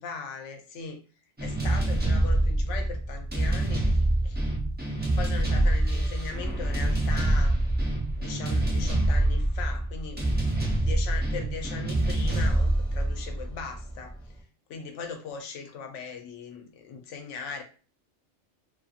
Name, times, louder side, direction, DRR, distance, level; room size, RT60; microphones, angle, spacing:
voice 1, 0.0-1.0 1.4-4.4 5.2-7.6 8.2-10.2 10.8-14.1 14.7-17.6, left 5 dB, 80° left, 5 dB, 0.9 m, -39 dB
sound 1, 1.4-14.1, right 1 dB, 15° right, 0.5 m, -26 dB
2.6 x 2.6 x 2.4 m, 0.37 s
omnidirectional pair, 1.2 m